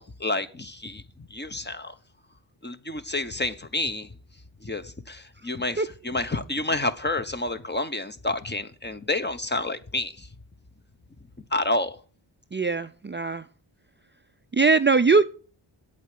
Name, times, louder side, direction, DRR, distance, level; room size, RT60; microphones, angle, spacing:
voice 1, 0.0-1.9 2.6-4.1 4.6-10.3 11.5-12.0, left 2 dB, 20° left, 1.1 m, -29 dB
voice 2, 12.5-13.5 14.5-15.2, right 4 dB, 25° right, 0.5 m, -21 dB
8.5 x 8.3 x 8.7 m
wide cardioid pair, 80°, 46 cm